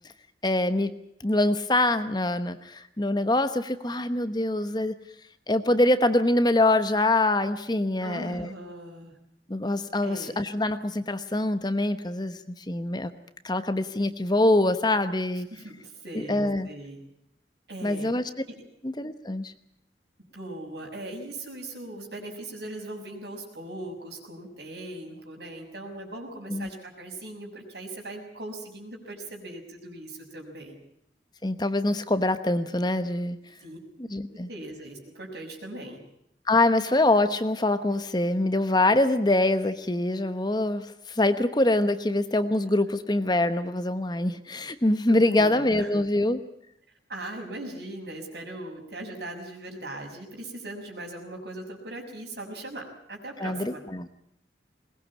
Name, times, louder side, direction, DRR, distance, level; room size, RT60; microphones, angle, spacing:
voice 1, 0.4-0.9 1.2-5.0 5.5-8.5 9.5-13.1 13.4-15.5 16.3-16.7 17.8-18.2 18.8-19.5 26.5-26.7 31.4-33.4 34.0-34.5 36.5-46.4 53.4-54.1, left 2 dB, 25° left, 10 dB, 1.0 m, -24 dB
voice 2, 8.0-9.1 10.0-10.4 15.5-17.0 17.7-18.1 20.3-30.8 33.6-33.8 34.3-36.0 45.1-45.9 47.1-53.8, right 1 dB, 65° right, 2 dB, 6.3 m, -39 dB
21.5 x 20.0 x 8.5 m, 0.73 s
head